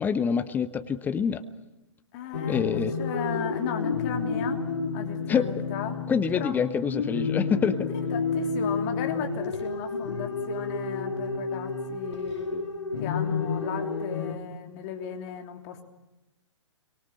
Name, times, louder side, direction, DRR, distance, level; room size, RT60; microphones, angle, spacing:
voice 1, 0.0-1.4 2.5-2.9 5.3-5.5 6.1-7.9, left 6 dB, 10° left, 11 dB, 0.8 m, -26 dB
voice 2, 2.1-4.7 4.9-6.0 6.3-6.6 8.1-12.7 13.0-15.8, left 8 dB, 35° left, 4 dB, 3.2 m, -36 dB
sound 1, 2.3-14.3, left 4 dB, 65° left, 4.0 m, -30 dB
29.5 x 23.5 x 6.5 m, 0.97 s
figure-of-eight pair, 125°, 16 cm